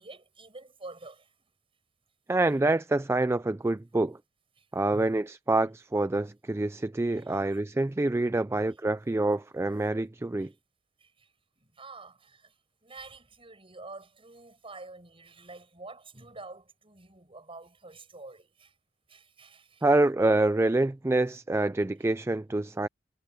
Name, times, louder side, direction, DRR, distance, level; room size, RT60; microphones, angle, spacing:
voice 1, 0.0-1.3 4.6-5.2 7.1-7.4 8.5-8.8 10.4-10.5 11.0-18.7 19.1-19.9, right 2 dB, 30° right, 6.8 m, -48 dB
voice 2, 2.3-4.2 4.7-10.5 19.8-22.9, right 2 dB, 15° right, 0.3 m, -26 dB
head